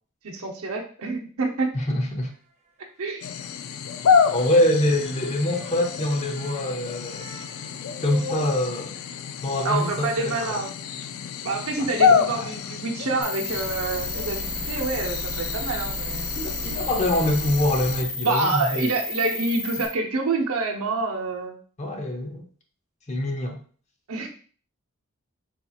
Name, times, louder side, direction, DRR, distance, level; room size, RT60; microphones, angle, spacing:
voice 1, 0.2-1.7 3.0-3.3 9.6-10.7 11.4-16.3 18.2-21.6 24.1-24.3, right 3 dB, 80° right, 1 dB, 0.8 m, -27 dB
voice 2, 1.7-2.3 4.3-7.3 8.0-8.9 9.4-10.6 11.8-12.5 16.3-18.9 21.8-22.4 23.1-23.6, left 1 dB, 30° left, 2 dB, 0.7 m, -25 dB
sound 1, 2.2-2.9 3.1-3.2 3.7-3.8 4.2-4.3 4.7-10.7, left 2 dB, 35° right, 0.5 m, -45 dB
sound 2, 3.2-18.0, left 6 dB, 70° left, 0.3 m, -28 dB
sound 3, 13.2-19.9, left 2 dB, 5° left, 0.9 m, -32 dB
4.2 x 2.8 x 2.4 m, 0.43 s
head